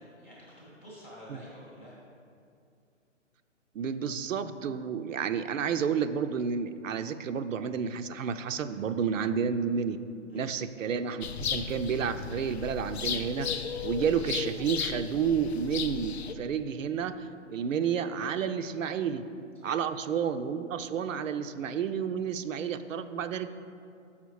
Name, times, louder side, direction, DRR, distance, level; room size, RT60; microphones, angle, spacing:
voice 1, 0.0-2.0 10.3-10.5 18.9-19.0 19.6-19.7 23.2-23.3, equal, 10° left, -7 dB, 0.6 m, -49 dB
voice 2, 3.7-10.0 10.3-11.2 11.5-13.5 13.8-19.2 19.6-23.5, right 7 dB, 75° right, 10 dB, 0.5 m, -30 dB
sound 1, 11.2-16.3, left 6 dB, 55° left, 0.5 m, -35 dB
7.0 x 5.7 x 4.7 m, 2.5 s
hypercardioid pair, 165°, 39 cm